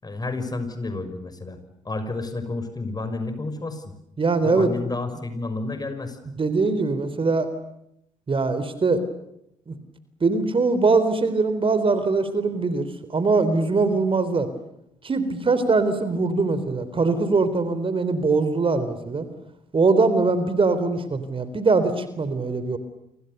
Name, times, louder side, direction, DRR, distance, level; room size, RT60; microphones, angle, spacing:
voice 1, 0.0-1.6 1.8-3.9 4.4-6.2, left 2 dB, 25° left, 9 dB, 6.2 m, -30 dB
voice 2, 4.2-4.7 6.4-7.5 8.3-9.0 9.7-9.8 10.2-12.9 13.1-14.5 15.0-19.3 19.7-22.8, right 3 dB, 35° right, 12 dB, 3.9 m, -22 dB
29.5 x 26.5 x 6.9 m, 0.79 s
hypercardioid pair, 50°, 16 cm